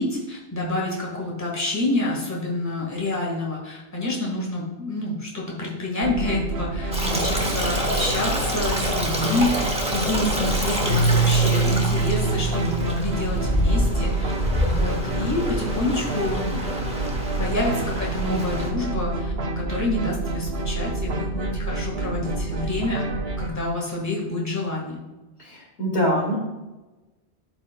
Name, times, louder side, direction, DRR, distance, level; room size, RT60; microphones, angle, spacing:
voice 1, 0.0-14.3 14.6-16.7 17.4-23.0 23.4-25.0, left 2 dB, 15° left, -3 dB, 1.6 m, -28 dB
sound 1, 6.0-23.5, right 2 dB, 65° right, 1.0 m, -28 dB
Stream, 6.9-18.7, equal, 5° right, 0.9 m, -27 dB
Keyboard (musical), 10.9-14.0, right 4 dB, 65° left, 1.2 m, -24 dB
voice 2, 25.4-26.3, equal, 85° left, -3 dB, 2.4 m, -24 dB
11.5 x 4.9 x 2.3 m, 1.1 s
omnidirectional pair, 1.1 m